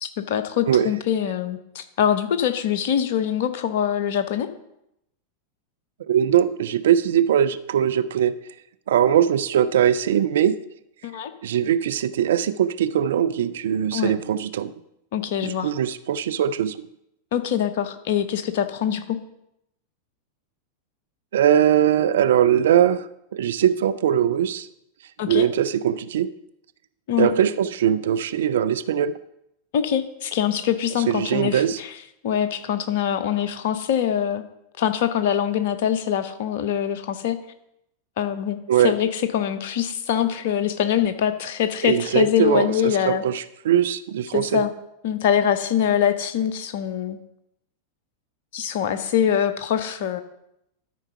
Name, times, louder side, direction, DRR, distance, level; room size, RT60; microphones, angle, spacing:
voice 1, 0.0-4.5 11.0-11.3 13.9-14.1 15.1-15.7 17.3-19.2 25.2-25.5 27.1-27.3 29.7-34.4 34.8-37.4 38.2-43.2 44.3-44.7 45.0-47.2 48.5-50.2, left 9 dB, 50° left, 10 dB, 0.8 m, -24 dB
voice 2, 6.1-8.3 8.9-10.5 11.4-14.7 15.4-16.7 21.3-23.1 23.3-24.7 25.3-26.3 27.2-29.1 31.1-31.8 38.7-38.9 41.8-44.6, right 9 dB, 60° right, 13 dB, 0.4 m, -21 dB
12.5 x 4.6 x 5.5 m, 0.81 s
figure-of-eight pair, 90°, 0 cm